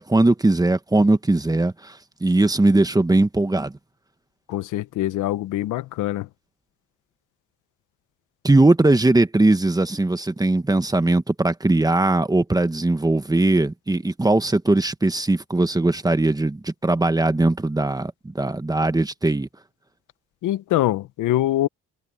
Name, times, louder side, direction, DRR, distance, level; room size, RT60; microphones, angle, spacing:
voice 1, 0.0-3.7 8.4-19.5, right 2 dB, 10° right, 1.3 m, -20 dB
voice 2, 4.5-6.3 20.4-21.7, left 14 dB, 85° left, 1.0 m, -24 dB
cardioid pair, 90°, 30 cm